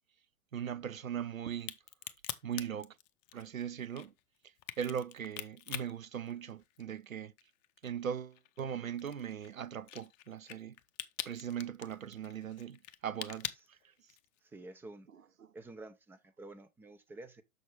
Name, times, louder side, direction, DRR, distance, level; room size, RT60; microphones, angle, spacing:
voice 1, 0.5-1.7 2.4-3.0 3.3-4.1 4.8-7.3 7.8-10.8 11.3-13.8 15.4-15.5, right 8 dB, 85° right, 0.6 m, -39 dB
Crack, 1.5-7.0 7.4-14.4, left 14 dB, 35° left, 0.6 m, -45 dB
voice 2, 14.4-15.1 15.5-17.4, right 2 dB, 5° right, 0.5 m, -50 dB
6.6 x 6.1 x 3.3 m
figure-of-eight pair, 110°, 40 cm